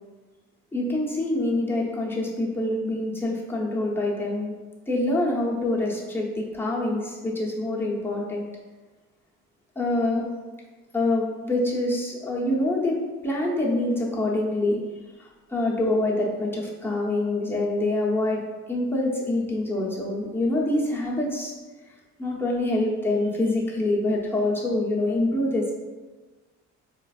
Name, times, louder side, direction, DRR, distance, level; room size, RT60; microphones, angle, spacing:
voice 1, 0.7-4.5 4.9-8.4 9.8-10.3 10.9-13.0 13.2-14.8 15.2-18.4 18.7-21.5 22.2-25.7, left 2 dB, 5° left, -4 dB, 0.8 m, -25 dB
4.4 x 2.5 x 2.4 m, 1.3 s
cardioid pair, 90°, 30 cm